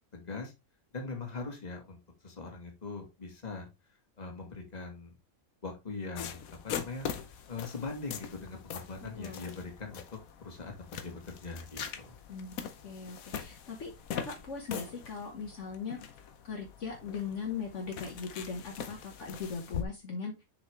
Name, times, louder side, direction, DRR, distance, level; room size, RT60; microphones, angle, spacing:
voice 1, 0.1-0.5 0.9-2.0 2.2-3.7 4.2-5.2 5.6-7.1 7.5-10.0 10.4-12.1, left 3 dB, 30° left, 3 dB, 1.8 m, -41 dB
sound 1, 6.2-19.8, left 8 dB, 75° left, 1.2 m, -42 dB
voice 2, 9.0-9.4 12.3-16.0 16.4-20.4, left 5 dB, 60° left, 2 dB, 1.4 m, -39 dB
6.4 x 5.4 x 3.2 m, 0.24 s
omnidirectional pair, 1.5 m